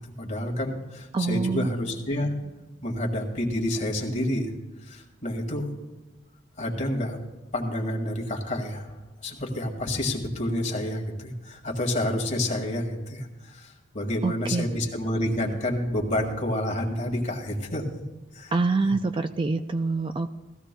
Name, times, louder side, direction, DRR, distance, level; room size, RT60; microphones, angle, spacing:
voice 1, 0.2-2.3 2.8-4.5 4.9-5.7 6.6-7.2 7.5-8.9 9.2-17.8 18.3-18.5 18.8-18.9, left 1 dB, 40° left, 1 dB, 1.9 m, -29 dB
voice 2, 1.1-1.7 14.2-14.8 18.5-20.4, right 3 dB, 25° right, 9 dB, 0.4 m, -26 dB
19.0 x 14.5 x 2.2 m, 1.1 s
head